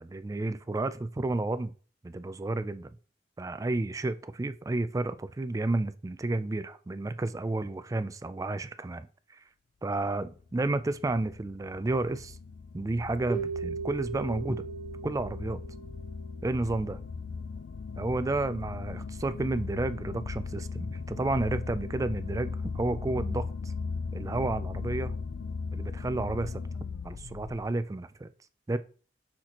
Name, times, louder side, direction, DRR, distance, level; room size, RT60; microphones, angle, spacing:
voice 1, 0.0-1.7 2.0-3.0 3.4-9.4 9.8-12.4 12.7-14.6 15.0-15.6 16.4-17.0 18.0-23.7 24.1-25.2 25.7-26.5 27.0-28.3 28.7-28.8, right 2 dB, 20° right, 0.3 m, -31 dB
sound 1, 10.3-27.7, left 4 dB, 75° left, 0.4 m, -38 dB
Keyboard (musical), 13.3-16.5, right 5 dB, 20° left, 3.4 m, -38 dB
6.3 x 5.9 x 2.9 m
head